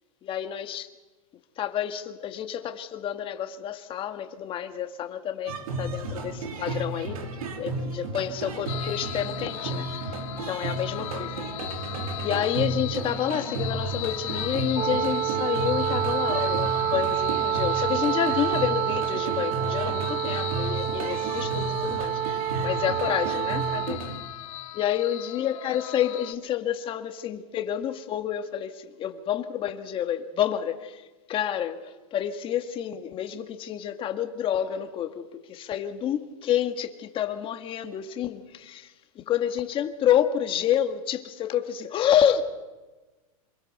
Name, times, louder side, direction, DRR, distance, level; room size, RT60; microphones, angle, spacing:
voice 1, 0.2-0.9 1.6-10.2 10.5-11.4 12.2-24.0 24.7-31.0 31.3-42.4, left 10 dB, 30° left, 1.9 m, -29 dB
sound 1, 5.5-24.2, right 3 dB, 75° right, 3.3 m, -33 dB
sound 2, 8.7-26.3, left 14 dB, 60° left, 1.5 m, -38 dB
Wind instrument woodwind instrument, 14.7-23.9, right 12 dB, 30° right, 0.9 m, -28 dB
27.0 x 21.5 x 6.8 m
supercardioid pair, 140°, 19 cm